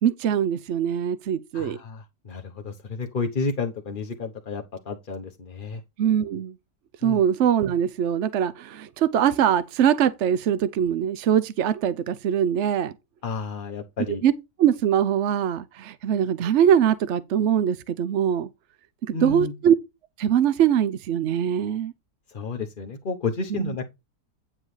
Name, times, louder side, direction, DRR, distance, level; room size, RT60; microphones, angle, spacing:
voice 1, 0.0-1.8 6.0-6.5 7.0-12.9 14.2-14.3 14.6-18.5 19.1-19.7 20.2-21.9 23.5-23.7, right 9 dB, 65° right, 0.7 m, -22 dB
voice 2, 1.5-5.8 7.0-7.2 13.2-14.2 19.1-19.6 22.3-23.9, left 4 dB, 40° left, 0.9 m, -31 dB
9.7 x 7.4 x 3.2 m
omnidirectional pair, 1.8 m